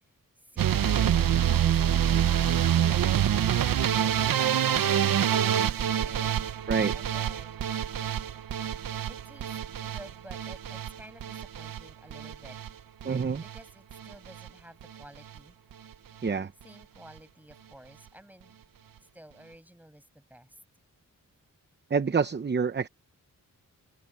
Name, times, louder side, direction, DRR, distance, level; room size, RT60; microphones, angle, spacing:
voice 1, 0.4-3.3 4.3-7.6 9.1-9.5 9.8-12.6 13.4-15.6 16.6-18.6 19.1-20.6, right 1 dB, 5° right, 6.5 m, -52 dB
sound 1, 0.6-12.7 13.0-13.6 13.9-14.5 14.8-15.0 15.4-15.5 15.7-15.8, right 9 dB, 90° right, 0.9 m, -26 dB
voice 2, 13.0-13.4 16.2-16.5 21.9-22.9, right 5 dB, 30° right, 0.8 m, -27 dB
open air
wide cardioid pair, 115°, 33 cm